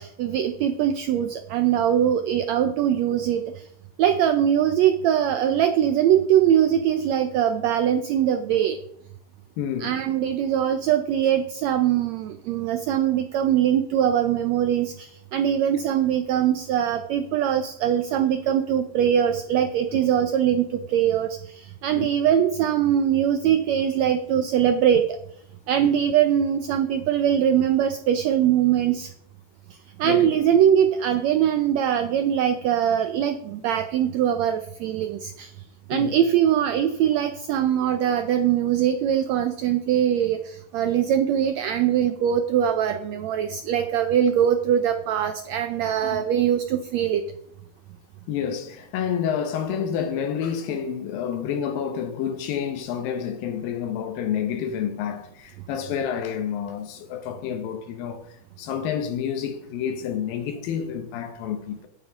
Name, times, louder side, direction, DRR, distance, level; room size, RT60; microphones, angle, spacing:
voice 1, 0.0-3.6 4.0-8.8 9.8-25.2 25.7-29.1 30.0-35.5 35.9-47.2, right 9 dB, 90° right, 1.5 m, -22 dB
voice 2, 9.6-9.9 21.9-22.1 25.8-25.9 30.0-30.3 35.9-36.1 46.0-46.2 48.3-58.2 58.6-61.9, left 8 dB, 85° left, 2.8 m, -29 dB
9.8 x 8.5 x 5.0 m
omnidirectional pair, 3.9 m